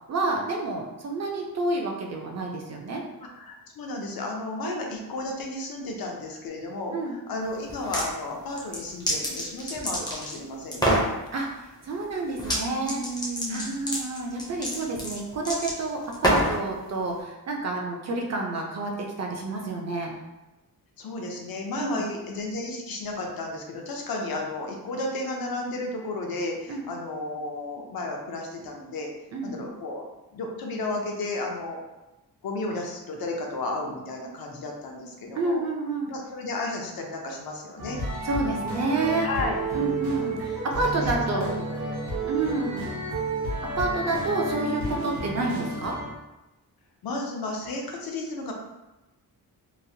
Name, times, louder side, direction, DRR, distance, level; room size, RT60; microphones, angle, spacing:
voice 1, 0.1-3.0 4.6-4.8 6.9-7.2 11.3-13.0 13.5-20.1 21.8-22.1 26.7-26.9 29.3-29.6 35.3-36.1 38.2-39.3 39.7-41.5 42.2-42.9 43.8-46.0, right 3 dB, 45° right, 0 dB, 0.4 m, -29 dB
voice 2, 3.3-11.0 12.8-13.7 21.0-29.1 29.4-30.0 30.3-31.8 32.4-35.6 36.1-38.0 39.2-39.6 40.8-41.7 47.0-48.5, left 2 dB, 70° left, 1 dB, 0.6 m, -33 dB
sound 1, 7.7-8.1 8.5-10.4 10.7-11.1 12.4-12.6 12.9-16.6, equal, 10° left, 0.4 m, -26 dB
sound 2, 37.8-46.1, right 2 dB, 70° right, 0.8 m, -31 dB
3.0 x 2.1 x 2.6 m, 1.0 s
wide cardioid pair, 180°, 37 cm